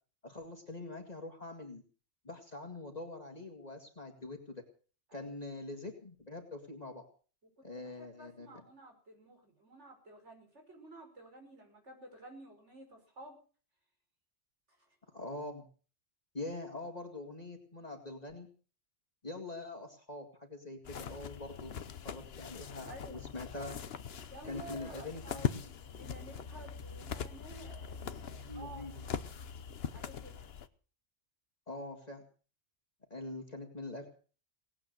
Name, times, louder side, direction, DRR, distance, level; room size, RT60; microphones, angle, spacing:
voice 1, 0.2-1.8 2.2-4.6 5.1-7.1 7.6-8.5 15.1-15.7 16.3-18.5 19.2-21.7 22.0-23.8 24.4-25.6 28.4-29.0 31.7-32.2 33.1-34.1, left 2 dB, 35° left, 3 dB, 2.3 m, -44 dB
voice 2, 7.6-13.4 14.7-15.2 22.8-23.2 24.3-25.5 26.0-29.4 29.9-30.4, right 2 dB, 75° right, 3 dB, 5.8 m, -52 dB
sound 1, 20.8-30.7, left 7 dB, 60° left, 1.1 m, -41 dB
19.0 x 8.6 x 8.0 m, 0.41 s
omnidirectional pair, 1.2 m